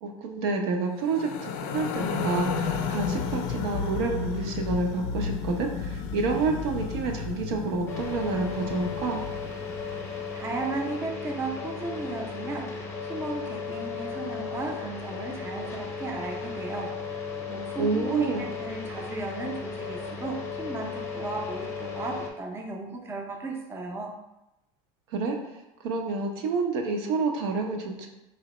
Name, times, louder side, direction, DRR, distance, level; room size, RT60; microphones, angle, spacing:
voice 1, 0.0-9.2 17.8-18.5 25.1-25.4 25.8-28.1, right 4 dB, 80° right, 3 dB, 0.7 m, -29 dB
sound 1, 1.0-10.3, left 5 dB, 55° left, 0.4 m, -33 dB
sound 2, 7.9-22.3, left 5 dB, 20° left, 0.7 m, -35 dB
voice 2, 10.3-24.1, right 3 dB, 20° right, 1 dB, 0.5 m, -35 dB
4.1 x 2.9 x 3.0 m, 0.91 s
supercardioid pair, 140°, 13 cm